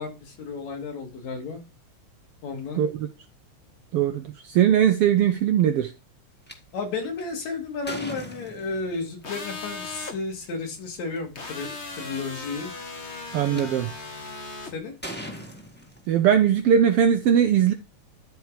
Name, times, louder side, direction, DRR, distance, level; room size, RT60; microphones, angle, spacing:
voice 1, 0.0-1.6 2.4-2.8 6.7-12.7 13.5-13.8 14.7-15.0, left 4 dB, 65° left, 3.6 m, -33 dB
voice 2, 3.9-5.9 13.3-13.9 16.1-17.7, right 9 dB, 85° right, 1.3 m, -20 dB
sound 1, 6.5-6.6 7.2-9.0 10.3-10.5 11.2-11.3 11.4-11.9 12.6-13.6 14.3-14.5 15.0-16.4, equal, 5° left, 1.0 m, -39 dB
sound 2, 9.2-10.1 11.3-14.7, left 3 dB, 40° left, 1.0 m, -37 dB
12.0 x 4.7 x 5.0 m
omnidirectional pair, 3.4 m